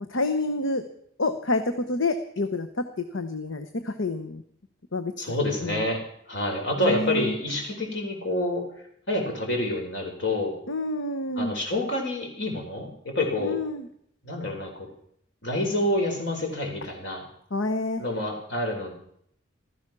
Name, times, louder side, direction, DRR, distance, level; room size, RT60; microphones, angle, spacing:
voice 1, 0.1-0.8 1.2-2.8 3.1-4.4 4.9-5.1 5.6-5.8 6.8-7.3 10.7-11.5 13.4-13.9 17.5-18.0, left 2 dB, 85° left, 8 dB, 1.1 m, -28 dB
voice 2, 5.2-8.6 9.1-10.6 11.4-13.6 14.2-14.9 15.4-17.2 18.0-18.9, left 1 dB, 60° left, 2 dB, 4.4 m, -28 dB
15.5 x 13.5 x 6.1 m, 0.68 s
head